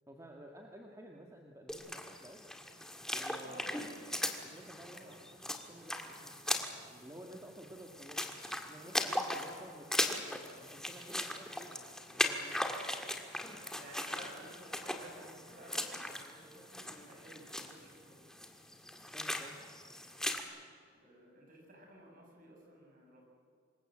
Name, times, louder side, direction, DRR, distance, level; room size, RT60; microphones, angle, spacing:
voice 1, 0.1-2.4 3.1-3.6 4.4-8.3 8.7-10.2 10.6-12.7 19.1-19.6, right 1 dB, 15° right, 1 dB, 1.7 m, -53 dB
sound 1, 1.7-20.4, left 1 dB, 5° left, 1.8 m, -39 dB
voice 2, 3.4-4.0 4.9-5.5 13.3-18.3 20.9-23.2, right 1 dB, 45° right, -1 dB, 7.5 m, -54 dB
26.0 x 21.0 x 7.8 m, 2.2 s
head